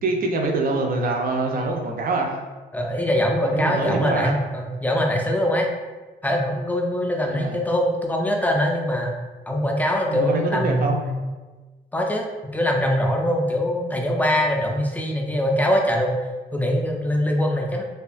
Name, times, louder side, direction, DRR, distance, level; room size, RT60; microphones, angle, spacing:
voice 1, 0.0-2.4 3.4-4.3 7.3-7.6 10.1-11.0, right 3 dB, 55° right, 2 dB, 0.5 m, -25 dB
voice 2, 2.7-5.7 6.2-9.2 9.5-11.2 11.9-12.3 12.5-16.2 16.5-17.8, equal, 10° left, 1 dB, 0.4 m, -22 dB
2.7 x 2.2 x 2.5 m, 1.3 s
cardioid pair, 85°, 18 cm